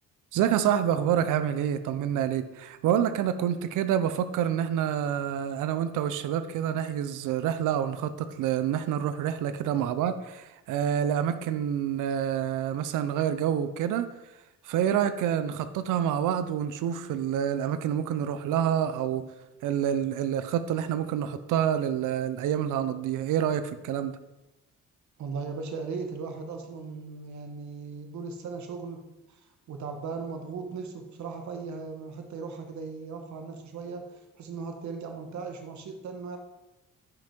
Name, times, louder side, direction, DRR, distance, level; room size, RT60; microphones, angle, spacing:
voice 1, 0.3-14.1 14.6-19.2 19.6-24.1, right 9 dB, 90° right, 11 dB, 0.7 m, -27 dB
voice 2, 25.2-29.0 29.3-29.4 29.7-36.4, right 4 dB, 70° right, 4 dB, 1.5 m, -37 dB
9.9 x 6.1 x 4.4 m, 1.0 s
cardioid pair, 90°, 30 cm